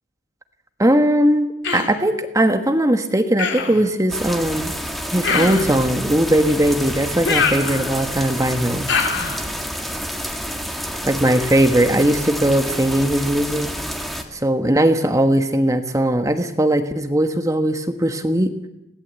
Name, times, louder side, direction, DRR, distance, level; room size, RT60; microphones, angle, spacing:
voice 1, 0.8-4.7 5.1-8.9 11.1-13.7 14.3-18.5, right 1 dB, 15° right, 8 dB, 1.3 m, -19 dB
Human voice, 1.6-2.0 3.4-3.8 5.2-5.8 7.2-8.1 8.9-9.4, left 5 dB, 60° left, 3.0 m, -23 dB
sound 1, 4.1-14.2, equal, ahead, 1.9 m, -29 dB
22.0 x 17.5 x 8.3 m, 0.86 s
head